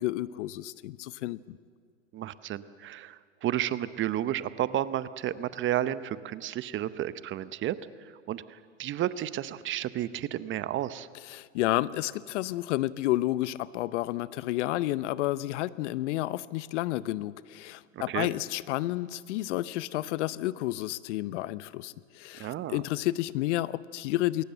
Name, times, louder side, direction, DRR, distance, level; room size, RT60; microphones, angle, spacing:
voice 1, 0.0-1.6 11.3-24.4, left 16 dB, 60° left, 18 dB, 0.8 m, -31 dB
voice 2, 2.1-11.1 17.9-18.3 22.4-22.8, right 12 dB, 30° right, 15 dB, 0.8 m, -32 dB
21.5 x 18.5 x 7.9 m, 2.1 s
hypercardioid pair, 100°, 39 cm